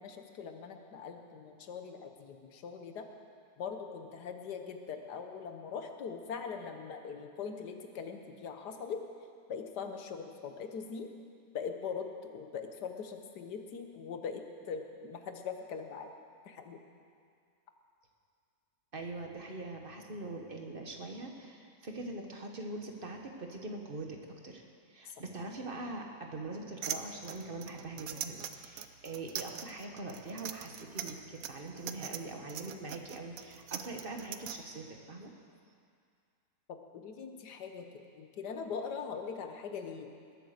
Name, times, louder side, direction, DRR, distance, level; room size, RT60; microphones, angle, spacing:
voice 1, 0.0-3.1 3.6-9.0 9.5-11.1 11.5-16.1 16.5-16.8 25.1-25.2 36.7-37.9 38.2-40.1, left 6 dB, 90° left, 6 dB, 1.7 m, -41 dB
voice 2, 18.9-24.2 24.4-24.6 24.9-35.3, right 2 dB, 35° right, 2 dB, 1.3 m, -43 dB
sound 1, 26.8-34.6, right 9 dB, 65° right, 1.1 m, -41 dB
20.5 x 8.4 x 6.6 m, 2.3 s
omnidirectional pair, 1.7 m